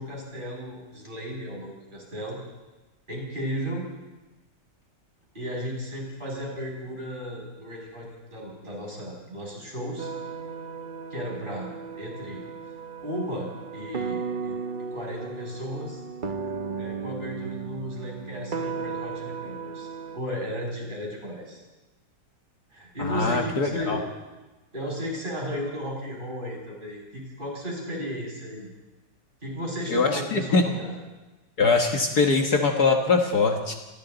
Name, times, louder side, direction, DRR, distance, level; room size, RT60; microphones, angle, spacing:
voice 1, 0.0-2.4 3.1-3.9 5.3-10.1 11.1-12.4 13.0-14.6 14.9-16.0 16.4-21.6 22.7-24.1 24.7-28.7 29.4-31.0, equal, 25° right, -2 dB, 7.1 m, -35 dB
sound 1, 10.0-20.2, right 5 dB, 40° right, 0.7 m, -35 dB
voice 2, 23.0-24.0 29.9-30.6 31.6-33.7, left 4 dB, 60° left, 3 dB, 2.1 m, -22 dB
28.0 x 23.0 x 4.1 m, 1.1 s
omnidirectional pair, 1.9 m